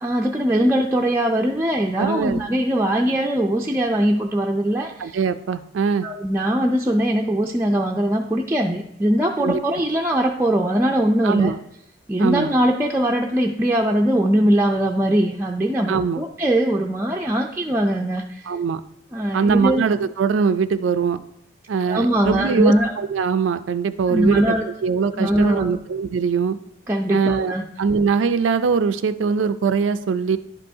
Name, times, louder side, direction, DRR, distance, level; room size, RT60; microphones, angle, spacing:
voice 1, 0.0-5.2 6.0-11.5 12.1-18.5 19.1-19.8 21.9-22.9 24.1-24.7 25.2-25.8 26.9-27.6, right 1 dB, 15° right, -1 dB, 0.4 m, -21 dB
voice 2, 2.0-2.4 5.0-6.1 9.4-9.6 11.2-11.6 12.2-12.5 15.9-16.2 18.5-18.8 19.3-21.2 21.7-24.6 24.8-26.6 27.1-27.5 27.8-30.4, right 5 dB, 90° right, 10 dB, 0.4 m, -21 dB
11.0 x 5.4 x 2.7 m, 0.79 s
head